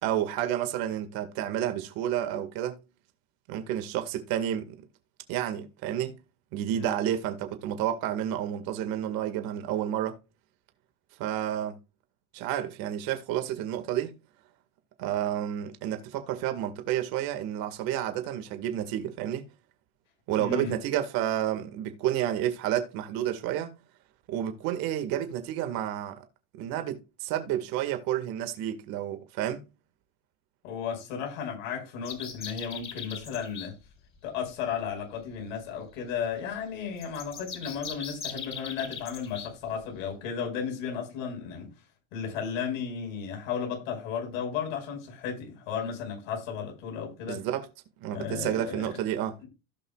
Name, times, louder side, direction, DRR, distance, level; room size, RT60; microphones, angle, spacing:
voice 1, 0.0-2.8 3.5-4.8 5.3-6.1 6.5-10.2 11.2-11.8 12.3-14.1 15.0-19.4 20.3-23.7 24.3-26.2 26.6-29.6 47.3-47.7 48.0-49.4, right 11 dB, 60° right, 2.1 m, -30 dB
voice 2, 20.4-20.7 30.6-33.8 34.2-41.7 42.1-47.4 48.1-49.0, left 7 dB, 85° left, 5.7 m, -34 dB
sound 1, 32.0-33.7 37.0-39.5, left 7 dB, 30° left, 4.4 m, -39 dB
17.0 x 5.7 x 2.4 m
supercardioid pair, 120°, 39 cm